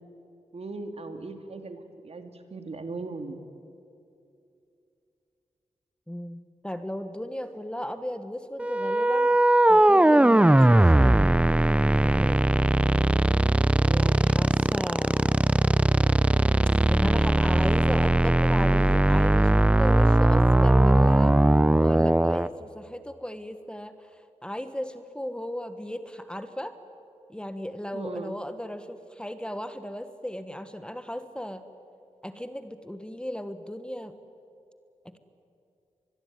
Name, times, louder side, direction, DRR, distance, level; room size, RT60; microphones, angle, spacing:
voice 1, 0.5-3.4 13.8-14.3 27.9-28.4, right 3 dB, 60° right, 6 dB, 2.6 m, -38 dB
voice 2, 6.1-9.4 9.7-11.4 11.9-12.5 13.9-15.4 16.9-21.4 21.8-23.9 24.4-26.8 27.3-31.6 32.2-34.2 35.0-35.2, equal, 10° left, 10 dB, 1.4 m, -36 dB
sound 1, 8.6-22.5, right 1 dB, 10° right, 0.6 m, -20 dB
25.0 x 21.5 x 9.5 m, 2.6 s
wide cardioid pair, 80°, 12 cm